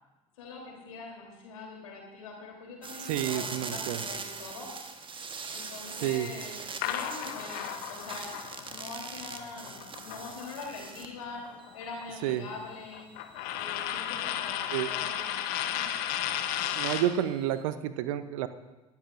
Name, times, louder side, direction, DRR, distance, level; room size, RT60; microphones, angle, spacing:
voice 1, 0.4-4.7 5.5-8.3 8.7-11.4 11.7-13.0 13.5-15.9, left 4 dB, 75° left, 0 dB, 3.5 m, -43 dB
sound 1, 2.8-11.2 11.6-17.6, right 4 dB, 30° right, 1.3 m, -43 dB
voice 2, 3.0-4.0 6.0-6.3 12.2-12.5 14.7-14.9 16.7-18.5, right 12 dB, 65° right, 13 dB, 0.7 m, -30 dB
sound 2, 6.8-10.9 11.2-17.2, left 11 dB, 60° left, 1.0 m, -34 dB
22.0 x 13.0 x 2.6 m, 1.1 s
figure-of-eight pair, 60°, 18 cm